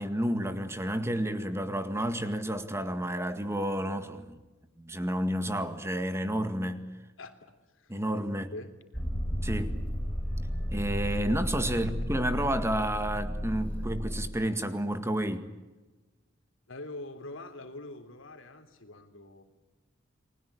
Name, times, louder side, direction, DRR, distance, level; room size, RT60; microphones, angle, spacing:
voice 1, 0.0-4.4 4.8-6.8 7.9-8.5 9.4-9.7 10.7-15.5, right 1 dB, 15° right, 1.9 m, -30 dB
voice 2, 7.2-8.0 8.5-9.0 11.7-11.8 16.7-19.4, left 2 dB, 90° left, 3.4 m, -44 dB
Motor vehicle (road), 8.9-14.3, equal, 10° left, 4.6 m, -33 dB
29.5 x 21.0 x 8.5 m
head